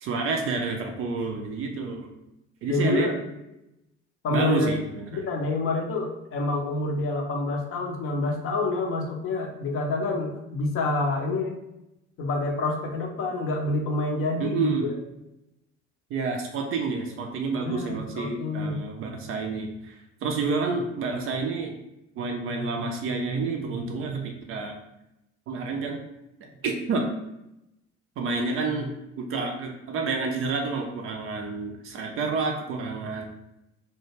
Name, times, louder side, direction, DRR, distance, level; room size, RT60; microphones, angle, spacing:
voice 1, 0.0-2.1 2.6-3.1 4.3-5.2 14.4-14.9 16.1-21.7 22.2-24.8 25.5-26.0 26.6-27.1 28.2-28.9 29.2-33.3, right 4 dB, 35° right, 2 dB, 0.4 m, -29 dB
voice 2, 2.7-3.2 4.2-4.7 5.1-11.6 12.2-15.0 17.6-18.9, left 3 dB, 35° left, 1 dB, 0.5 m, -27 dB
2.1 x 2.1 x 3.1 m, 0.87 s
figure-of-eight pair, 55°, 37 cm